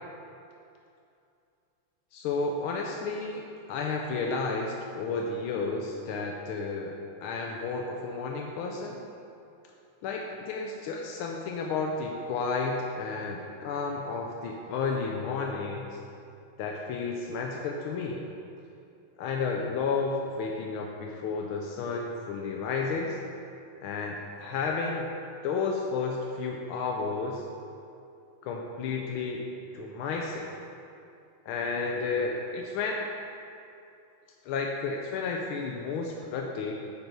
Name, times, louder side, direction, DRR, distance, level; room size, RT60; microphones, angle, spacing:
voice 1, 2.1-6.9 7.2-9.0 10.0-16.0 16.6-18.2 19.2-23.2 23.8-25.1 25.4-27.4 28.4-29.5 29.7-30.5 31.5-33.1 34.4-36.7, left 4 dB, 85° left, 1 dB, 1.5 m, -32 dB
9.3 x 5.5 x 4.5 m, 2.6 s
omnidirectional pair, 2.3 m